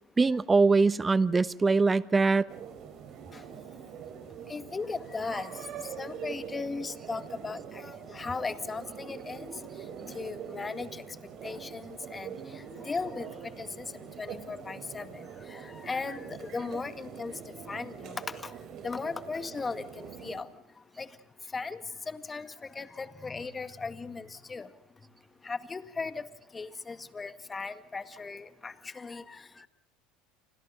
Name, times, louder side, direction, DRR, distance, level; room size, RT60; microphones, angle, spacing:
voice 1, 0.2-2.5, right 4 dB, 20° right, 1.1 m, -23 dB
sound 1, 2.5-20.4, right 7 dB, 50° right, 4.0 m, -44 dB
voice 2, 4.5-5.5 6.0-9.5 10.1-11.0 11.4-12.3 12.8-13.3 13.6-13.8 14.2-15.2 15.5-17.3 17.7-18.5 18.8-20.5 21.0-21.1 21.5-21.8 22.1-22.5 22.8-24.7 25.4-26.3 26.5-29.4, left 4 dB, 20° left, 2.0 m, -37 dB
30.0 x 26.0 x 3.8 m
hypercardioid pair, 80°, 0 cm